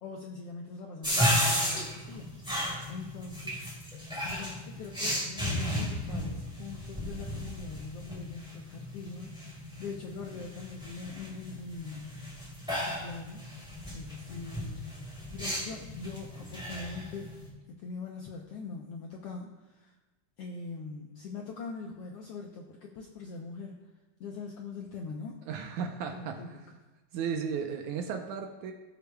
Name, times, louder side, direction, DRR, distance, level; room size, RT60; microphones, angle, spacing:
voice 1, 0.0-3.6 4.2-12.3 12.9-13.5 13.9-14.9 15.3-17.3 17.7-19.9 20.4-23.8 24.2-25.4 26.1-26.5, left 4 dB, 85° left, 0 dB, 1.3 m, -42 dB
sound 1, 1.0-17.5, equal, ahead, 2.4 m, -34 dB
voice 2, 25.5-26.6 27.1-28.7, right 6 dB, 80° right, 4 dB, 2.1 m, -35 dB
19.0 x 6.9 x 2.3 m, 1.1 s
omnidirectional pair, 3.6 m